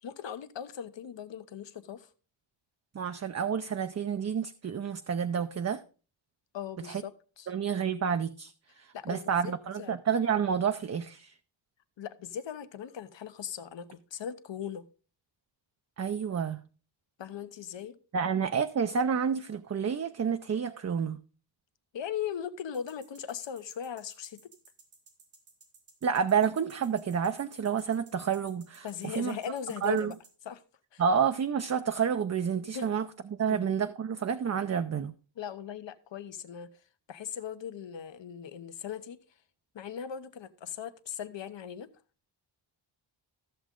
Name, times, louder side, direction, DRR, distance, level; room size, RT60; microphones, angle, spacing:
voice 1, 0.0-2.1 6.5-7.1 7.4-7.5 8.9-10.0 12.0-14.8 17.2-18.0 21.9-24.5 28.8-30.2 30.4-30.6 30.9-31.0 32.7-32.9 33.4-33.6 35.4-36.7 37.1-39.2 39.7-41.9, left 8 dB, 65° left, 1.0 m, -39 dB
voice 2, 2.9-5.8 6.9-7.0 7.5-8.5 8.8-11.3 16.0-16.6 18.1-21.2 26.0-28.9 29.2-29.4 29.8-30.1 31.0-33.1 33.4-35.1, right 7 dB, 35° right, 0.5 m, -29 dB
sound 1, 22.7-30.3, right 5 dB, 90° right, 3.3 m, -57 dB
14.0 x 7.2 x 3.7 m
wide cardioid pair, 120°, 47 cm